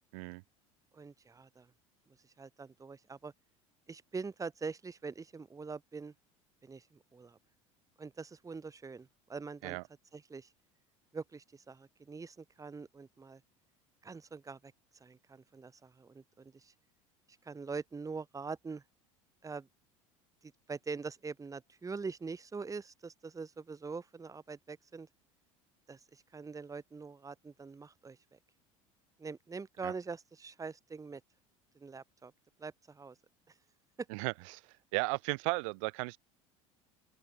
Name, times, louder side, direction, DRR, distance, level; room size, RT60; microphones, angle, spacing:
voice 1, 0.9-1.7 2.1-3.3 3.9-6.1 6.6-7.4 8.0-9.8 10.1-10.5 11.1-13.4 14.0-16.7 17.4-18.8 19.4-19.7 20.4-25.1 25.9-28.4 29.2-31.2 31.8-32.3 32.6-33.2 33.5-33.6 34.0-34.1, right 4 dB, 20° right, 1.9 m, -44 dB
voice 2, 34.9-36.2, right 30 dB, 75° right, 2.3 m, -34 dB
open air
hypercardioid pair, 85°, 17 cm